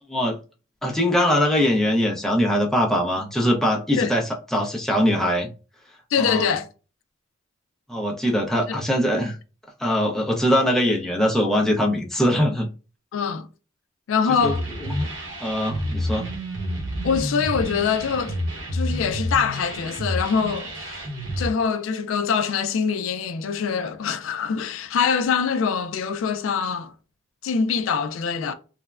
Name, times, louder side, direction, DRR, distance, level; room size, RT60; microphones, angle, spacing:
voice 1, 0.8-5.5 6.2-6.5 7.9-9.4 9.8-12.7 14.3-14.5 14.8-15.1 15.4-16.3, equal, ahead, 0.5 m, -22 dB
voice 2, 6.1-6.7 8.7-8.8 13.1-13.5 14.1-14.6 17.0-18.4 18.7-21.0 21.4-26.9 27.4-28.5, left 6 dB, 70° left, 0.3 m, -24 dB
sound 1, 14.4-21.5, equal, 70° right, 0.9 m, -29 dB
3.2 x 2.1 x 2.3 m
head